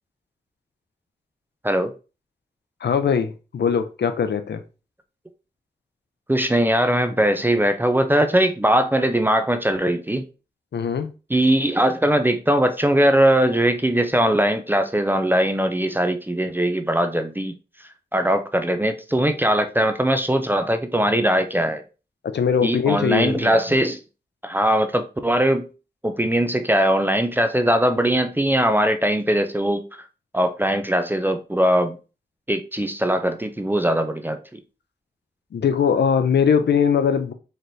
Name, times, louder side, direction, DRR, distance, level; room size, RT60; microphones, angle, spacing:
voice 1, 2.8-4.6 10.7-11.1 22.2-23.5 35.5-37.3, left 7 dB, 70° left, 0.5 m, -21 dB
voice 2, 6.3-10.3 11.3-17.5 18.1-21.8 22.6-24.0 24.4-25.7 26.0-29.8 30.3-32.0 32.5-34.6, right 1 dB, 10° right, 0.4 m, -20 dB
4.2 x 3.2 x 2.6 m
wide cardioid pair, 115°, 18 cm